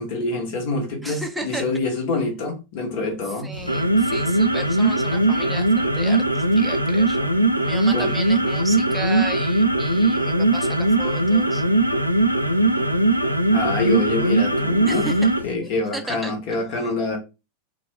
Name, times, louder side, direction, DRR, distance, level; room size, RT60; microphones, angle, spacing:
voice 1, 0.0-3.6 7.9-8.1 13.5-15.1 15.4-17.2, left 2 dB, 50° left, 0.9 m, -26 dB
voice 2, 1.0-1.6 3.4-7.4 7.6-11.6 14.9-15.3 15.6-16.3, right 2 dB, 5° right, 0.5 m, -34 dB
sound 1, 3.5-15.5, right 2 dB, 90° left, 0.3 m, -20 dB
2.4 x 2.1 x 3.0 m
figure-of-eight pair, 90°, 0 cm